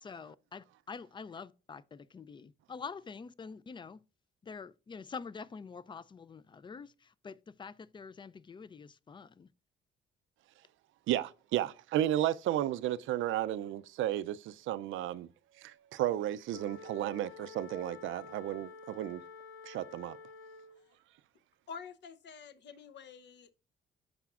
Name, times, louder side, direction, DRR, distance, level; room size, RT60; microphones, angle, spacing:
voice 1, 0.0-4.0 4.4-9.5, left 5 dB, 25° left, 0.4 m, -46 dB
voice 2, 11.1-15.3 15.6-19.2 19.7-20.2, right 12 dB, 80° right, 0.4 m, -33 dB
Wind instrument woodwind instrument, 16.5-20.9, left 5 dB, 85° left, 1.0 m, -50 dB
voice 3, 21.7-23.5, left 6 dB, 60° left, 0.8 m, -48 dB
13.0 x 4.9 x 2.4 m
cardioid pair, 90°, 20 cm